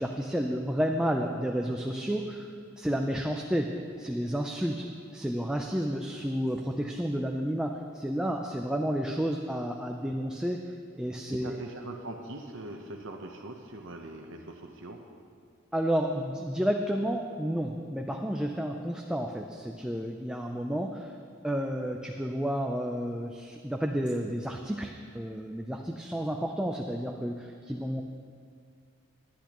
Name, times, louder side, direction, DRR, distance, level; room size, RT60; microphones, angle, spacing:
voice 1, 0.0-2.5 2.8-4.9 5.1-10.6 11.0-11.6 15.7-21.1 21.4-28.0, equal, 5° right, 2 dB, 0.4 m, -31 dB
voice 2, 11.0-15.0, right 2 dB, 60° right, 2 dB, 0.8 m, -42 dB
18.5 x 10.5 x 3.0 m, 2.2 s
head